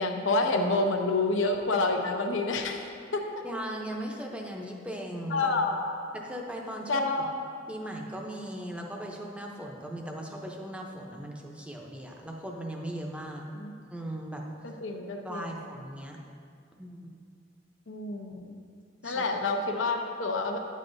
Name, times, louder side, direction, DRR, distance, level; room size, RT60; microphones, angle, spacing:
voice 1, 0.0-2.8 3.1-3.2 5.3-6.1 6.9-7.3 13.5-13.7 14.6-15.5 17.9-18.6 19.0-20.6, left 3 dB, 90° left, 3 dB, 0.7 m, -28 dB
voice 2, 3.4-5.5 6.1-7.3 7.7-13.5 13.9-14.4 15.2-16.2 16.7-17.1 19.0-19.2, right 1 dB, 5° right, 0 dB, 0.6 m, -38 dB
10.0 x 7.4 x 2.6 m, 2.3 s
head